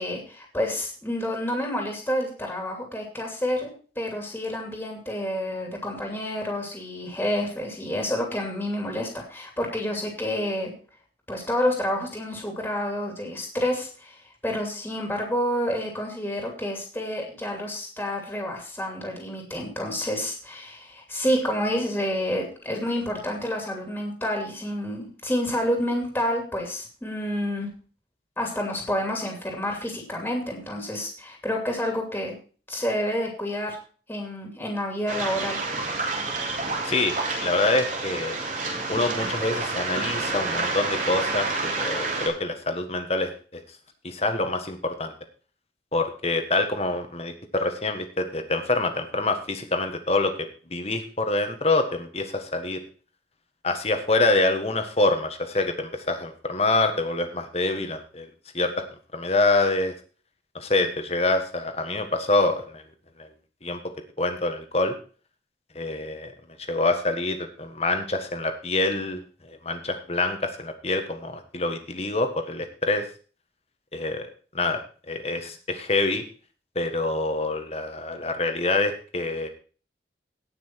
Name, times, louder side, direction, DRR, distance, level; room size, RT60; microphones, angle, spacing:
voice 1, 0.0-10.7 11.3-27.7 28.4-32.3 32.7-33.8 34.1-35.6, left 1 dB, 10° left, 1 dB, 2.7 m, -29 dB
Waves surf, 35.1-42.3, right 3 dB, 45° right, 3.4 m, -29 dB
voice 2, 36.8-38.4 38.9-43.6 44.0-45.1 45.9-52.8 53.6-58.3 58.5-58.8 59.1-59.9 60.5-62.8 63.2-63.3 63.6-63.8 64.2-64.9 65.7-66.3 66.7-69.2 69.5-73.1 73.9-74.3 74.5-74.8 75.1-76.2 76.7-79.5, left 2 dB, 35° left, 7 dB, 1.6 m, -26 dB
17.5 x 6.0 x 4.6 m, 0.39 s
head